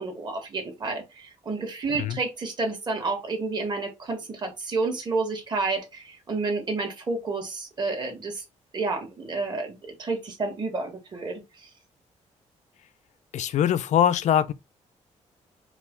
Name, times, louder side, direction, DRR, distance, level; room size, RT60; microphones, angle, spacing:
voice 1, 0.0-8.4 8.7-11.4, right 3 dB, 35° right, 1.6 m, -30 dB
voice 2, 13.3-14.5, left 10 dB, 65° left, 0.4 m, -22 dB
4.7 x 2.3 x 3.6 m
cardioid pair, 120°, 13 cm